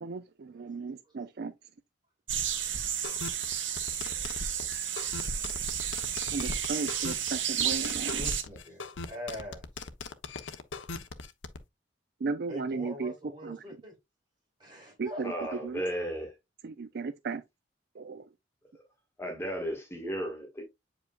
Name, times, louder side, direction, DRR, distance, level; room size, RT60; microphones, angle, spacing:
voice 1, 0.6-1.5 6.3-8.2 12.2-13.1 13.5-13.6 15.0-15.1 17.0-17.4 18.1-18.2, right 4 dB, 55° right, 0.4 m, -34 dB
sound 1, 2.3-8.4, right 8 dB, 90° right, 1.4 m, -32 dB
sound 2, 3.0-11.6, left 4 dB, 85° left, 0.8 m, -40 dB
voice 2, 8.1-9.6 12.5-13.9 14.6-15.5, left 1 dB, 25° right, 4.9 m, -43 dB
voice 3, 15.2-16.3 19.2-20.6, equal, 15° left, 1.6 m, -34 dB
8.2 x 5.1 x 2.4 m
head